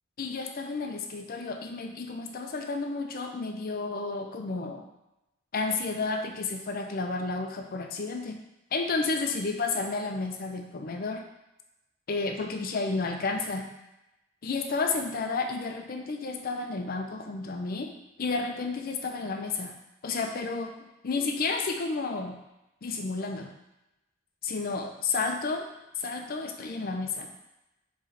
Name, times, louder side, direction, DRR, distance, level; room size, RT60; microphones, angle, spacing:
voice 1, 0.2-4.8 5.5-8.4 8.7-11.2 12.1-13.7 14.4-17.9 18.2-19.7 20.0-20.7 21.0-22.4 22.8-23.5 24.4-25.7 26.0-27.3, left 3 dB, 50° left, 4 dB, 0.5 m, -31 dB
4.2 x 3.1 x 3.9 m, 0.95 s
head